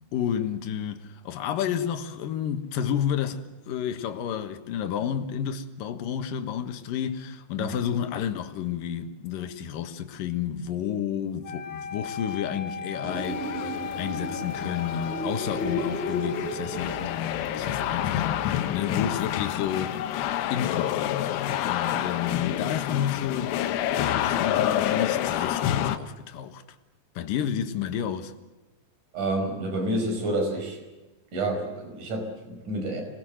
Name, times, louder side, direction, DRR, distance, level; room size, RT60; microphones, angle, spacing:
voice 1, 0.0-20.0 20.5-26.6 27.2-28.3, left 9 dB, 65° left, 2.7 m, -31 dB
sound 1, 11.4-19.5, left 6 dB, 50° left, 3.6 m, -38 dB
sound 2, 13.0-17.0, left 1 dB, 5° left, 5.1 m, -33 dB
sound 3, 13.1-26.0, left 11 dB, 90° left, 3.2 m, -29 dB
voice 2, 29.1-30.8 31.3-33.0, right 1 dB, 50° right, 6.4 m, -29 dB
27.5 x 20.5 x 7.8 m
omnidirectional pair, 4.8 m